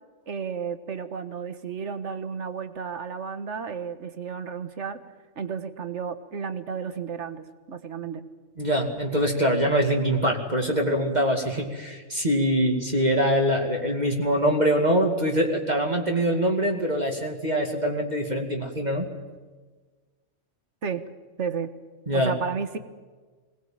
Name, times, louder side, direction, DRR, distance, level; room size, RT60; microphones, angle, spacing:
voice 1, 0.3-5.0 5.4-8.2 20.8-21.0 21.4-21.7 22.1-22.8, right 6 dB, 70° right, 10 dB, 1.7 m, -32 dB
voice 2, 8.6-19.1 22.1-22.3, equal, 35° right, 1 dB, 2.5 m, -24 dB
22.0 x 20.0 x 8.9 m, 1.4 s
omnidirectional pair, 1.3 m